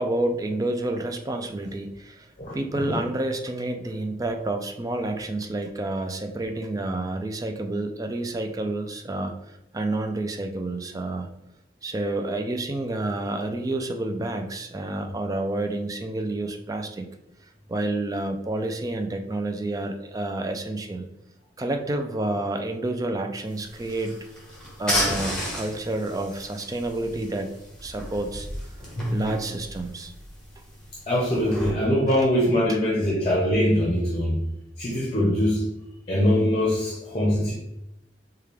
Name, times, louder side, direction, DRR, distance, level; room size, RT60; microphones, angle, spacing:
voice 1, 0.0-2.3 2.5-11.3 11.8-17.0 17.7-21.1 21.6-24.2 24.8-27.5 27.8-28.5 29.1-30.1 32.1-32.2, right 2 dB, 20° right, 5 dB, 0.3 m, -29 dB
voice 2, 2.4-3.0 29.0-29.2 31.1-34.4 34.8-35.7 36.1-37.5, equal, 30° left, -4 dB, 0.8 m, -23 dB
sound 1, 23.5-31.7, equal, 5° left, 1.3 m, -33 dB
4.8 x 2.3 x 3.3 m, 0.89 s
head